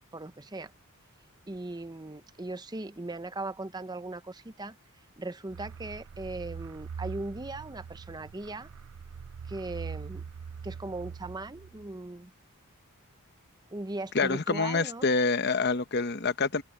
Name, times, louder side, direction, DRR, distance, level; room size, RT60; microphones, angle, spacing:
voice 1, 0.1-0.7 1.5-4.8 5.2-8.7 9.5-10.2 10.6-12.3 13.7-15.1, right 2 dB, 20° right, 0.7 m, -38 dB
sound 1, 5.5-12.0, right 6 dB, 75° right, 0.5 m, -43 dB
voice 2, 14.1-16.6, left 4 dB, 45° left, 0.9 m, -27 dB
open air
head